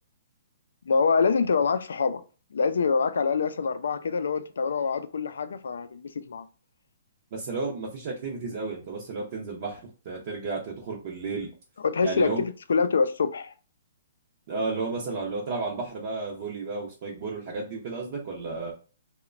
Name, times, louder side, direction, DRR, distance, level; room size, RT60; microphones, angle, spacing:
voice 1, 0.9-2.2 2.5-6.5 11.8-13.5, left 5 dB, 80° left, 0.3 m, -25 dB
voice 2, 7.3-11.5 12.0-12.4 14.5-18.7, right 4 dB, 40° right, 0.5 m, -32 dB
2.9 x 2.1 x 2.4 m
hypercardioid pair, 165°, 0 cm